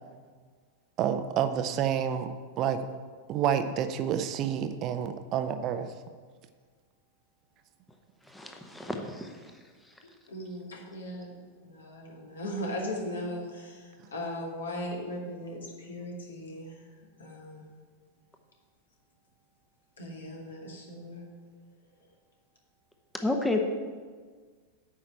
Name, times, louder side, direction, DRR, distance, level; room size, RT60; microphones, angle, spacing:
voice 1, 1.0-2.8 3.3-5.9, right 9 dB, 35° right, 10 dB, 0.7 m, -29 dB
voice 2, 8.3-9.3 23.2-23.6, left 2 dB, 5° left, 3 dB, 1.0 m, -30 dB
voice 3, 10.3-11.3 11.6-16.8 17.2-17.6 20.0-21.2, left 1 dB, 70° left, -1 dB, 2.5 m, -38 dB
9.2 x 5.8 x 7.9 m, 1.5 s
figure-of-eight pair, 90°, 0 cm